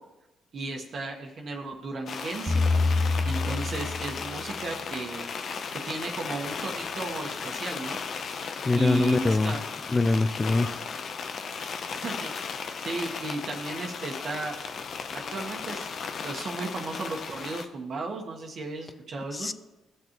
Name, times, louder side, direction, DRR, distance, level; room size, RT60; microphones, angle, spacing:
voice 1, 0.5-2.6 3.2-5.3 5.8-8.0 8.7-9.6 11.9-12.3 12.8-14.6 15.1-16.0 16.2-19.5, right 2 dB, 55° right, 1 dB, 1.3 m, -34 dB
sound 1, 2.1-17.7, left 5 dB, 55° left, 0.7 m, -36 dB
sound 2, 2.5-4.9, left 3 dB, 20° right, 2.0 m, -26 dB
voice 2, 8.6-9.6 9.9-10.8 19.3-19.5, left 3 dB, 25° left, 14 dB, 0.5 m, -24 dB
16.0 x 6.5 x 3.0 m, 1.0 s
cardioid pair, 90°, 0 cm